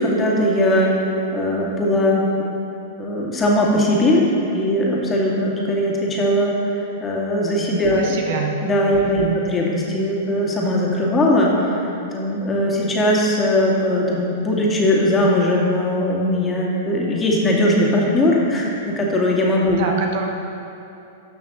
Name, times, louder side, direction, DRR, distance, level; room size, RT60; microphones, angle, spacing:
voice 1, 0.0-2.3 3.0-4.3 4.5-8.2 8.6-19.8, left 1 dB, 20° left, -3 dB, 2.0 m, -19 dB
voice 2, 7.9-8.5 9.0-9.4 19.7-20.3, right 6 dB, 60° right, 2 dB, 1.1 m, -26 dB
13.0 x 6.3 x 3.8 m, 2.8 s
hypercardioid pair, 105°, 0 cm